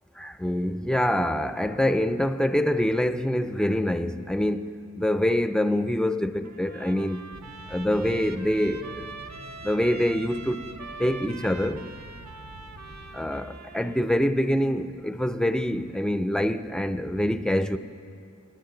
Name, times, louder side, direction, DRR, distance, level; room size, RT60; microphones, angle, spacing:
voice 1, 0.2-7.3 7.7-9.1 9.6-10.6 11.0-11.9 13.1-17.8, left 1 dB, ahead, 0.5 m, -25 dB
Trumpet, 6.4-14.0, right 4 dB, 55° right, 0.8 m, -43 dB
sound 1, 7.3-13.3, right 1 dB, 85° right, 1.2 m, -47 dB
22.0 x 9.3 x 3.9 m
wide cardioid pair, 40°, 32 cm